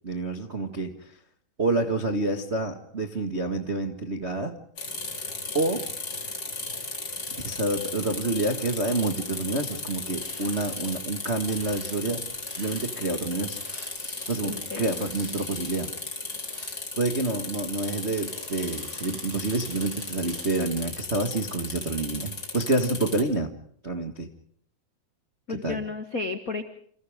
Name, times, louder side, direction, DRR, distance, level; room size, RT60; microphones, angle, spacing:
voice 1, 0.0-1.1 1.6-4.6 5.5-5.9 7.3-12.2 12.5-13.6 14.3-15.9 17.0-23.5 23.8-24.3 25.5-25.8, right 2 dB, 50° right, 5 dB, 0.7 m, -28 dB
sound 1, 4.8-23.2, left 3 dB, 25° left, 4.3 m, -36 dB
sound 2, 9.9-11.0 11.4-16.8 17.6-21.0 21.3-21.5, right 2 dB, 35° right, 6.6 m, -49 dB
voice 2, 14.4-14.9 25.5-26.6, left 3 dB, 70° left, 8 dB, 0.8 m, -33 dB
30.0 x 27.5 x 3.6 m, 0.63 s
omnidirectional pair, 4.3 m